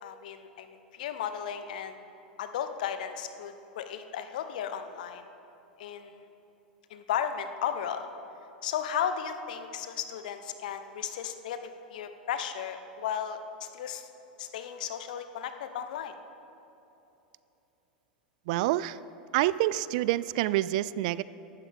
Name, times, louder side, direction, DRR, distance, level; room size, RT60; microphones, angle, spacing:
voice 1, 0.0-2.0 2.4-5.3 5.8-6.3 6.9-8.1 8.6-14.1 14.4-16.2, left 8 dB, 60° left, 9 dB, 1.0 m, -35 dB
voice 2, 18.5-19.0 19.3-21.2, right 15 dB, 55° right, 18 dB, 0.4 m, -27 dB
22.5 x 12.5 x 3.6 m, 3.0 s
figure-of-eight pair, 90°, 5 cm